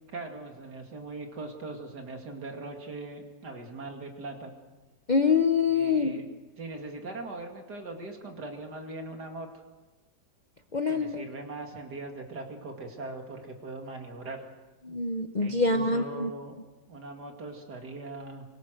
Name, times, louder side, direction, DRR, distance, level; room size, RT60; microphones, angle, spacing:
voice 1, 0.1-4.5 5.7-6.2 6.6-9.5 10.9-14.4 15.4-16.6 16.9-18.4, right 2 dB, 70° right, 3 dB, 3.0 m, -40 dB
voice 2, 5.1-6.2 10.7-11.2 14.8-16.3, left 4 dB, 35° left, 6 dB, 0.7 m, -25 dB
25.0 x 19.0 x 6.4 m, 1.2 s
omnidirectional pair, 1.8 m